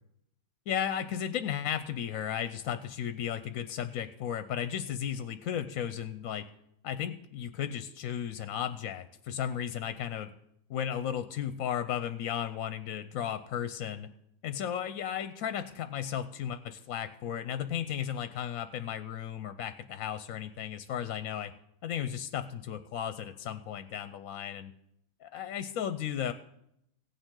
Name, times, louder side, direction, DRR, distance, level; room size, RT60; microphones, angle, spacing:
voice 1, 0.7-6.5 6.8-10.3 10.7-14.1 14.4-21.5 21.8-24.7 25.2-26.3, left 9 dB, 70° left, 11 dB, 0.9 m, -35 dB
16.0 x 9.0 x 3.7 m, 0.76 s
omnidirectional pair, 1.6 m